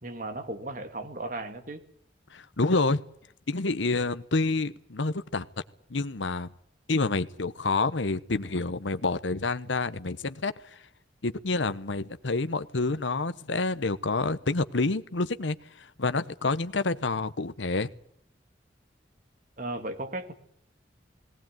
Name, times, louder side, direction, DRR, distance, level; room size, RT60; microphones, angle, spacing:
voice 1, 0.0-1.8 19.6-20.3, right 2 dB, 45° right, 8 dB, 2.3 m, -35 dB
voice 2, 2.3-3.0 3.5-5.5 5.9-6.5 6.9-10.5 11.2-15.6 16.0-17.9, left 3 dB, 85° left, 12 dB, 1.0 m, -28 dB
19.0 x 18.5 x 9.2 m, 0.65 s
head